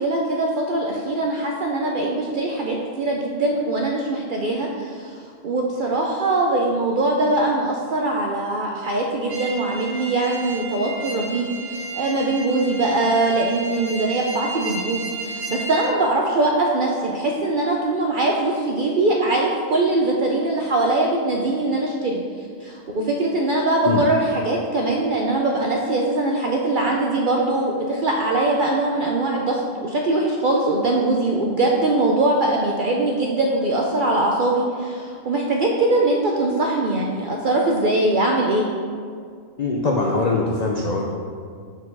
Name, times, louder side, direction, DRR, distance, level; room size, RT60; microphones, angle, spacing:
voice 1, 0.0-22.2 22.6-38.7, right 2 dB, 65° right, -1 dB, 0.5 m, -22 dB
sound 1, 9.3-15.9, right 3 dB, 85° right, 1.4 m, -33 dB
voice 2, 39.6-41.1, left 3 dB, 80° left, -1 dB, 0.3 m, -22 dB
4.5 x 4.3 x 5.3 m, 2.1 s
omnidirectional pair, 1.4 m